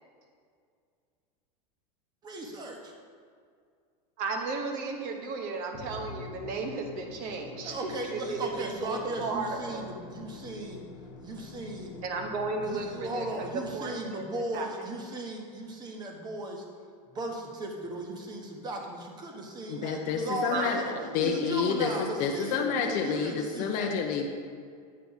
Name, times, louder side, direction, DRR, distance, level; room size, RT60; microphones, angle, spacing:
voice 1, 2.2-2.9 7.6-10.9 11.2-12.0 12.6-16.6 17.1-20.9 21.2-23.9, right 2 dB, 20° right, 2 dB, 1.0 m, -37 dB
voice 2, 4.2-9.9 12.0-13.5 13.7-14.2 14.5-14.7 20.5-21.3, right 3 dB, 45° right, 3 dB, 1.1 m, -34 dB
Musical instrument, 5.7-14.3, left 5 dB, 80° left, 1.0 m, -46 dB
voice 3, 19.7-24.3, left 6 dB, 40° left, 1 dB, 0.6 m, -29 dB
8.4 x 5.8 x 3.9 m, 2.2 s
supercardioid pair, 150°, 20 cm